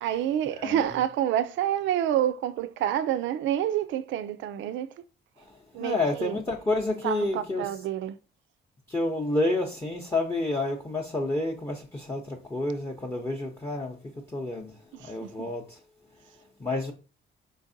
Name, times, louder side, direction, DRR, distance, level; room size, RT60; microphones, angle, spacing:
voice 1, 0.0-4.9 5.7-6.4 7.0-8.2 14.9-15.5, right 11 dB, 75° right, 0.4 m, -28 dB
voice 2, 5.8-7.7 8.9-14.0 14.3-14.7 15.0-15.8 16.6-16.9, left 2 dB, 15° left, 0.7 m, -29 dB
4.2 x 3.9 x 2.6 m
cardioid pair, 110°, 20 cm